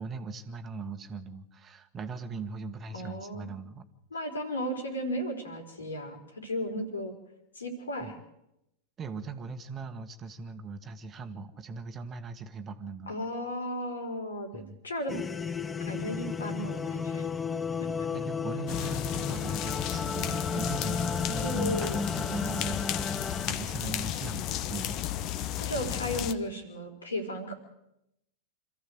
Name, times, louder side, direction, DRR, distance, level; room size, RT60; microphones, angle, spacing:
voice 1, 0.0-3.9 8.0-8.1 9.0-13.1 14.5-14.8 18.1-25.0, right 4 dB, 25° right, 8 dB, 1.7 m, -40 dB
voice 2, 2.9-3.5 4.1-7.2 7.6-8.2 13.1-15.2 15.8-17.3 17.8-17.9 21.4-22.1 25.6-27.6, equal, 75° left, 5 dB, 4.3 m, -35 dB
sound 1, 15.1-23.5, left 5 dB, 15° left, 0.8 m, -33 dB
sound 2, 18.7-26.3, left 11 dB, 40° left, 1.1 m, -33 dB
27.0 x 14.5 x 7.9 m, 0.84 s
figure-of-eight pair, 90°, 0 cm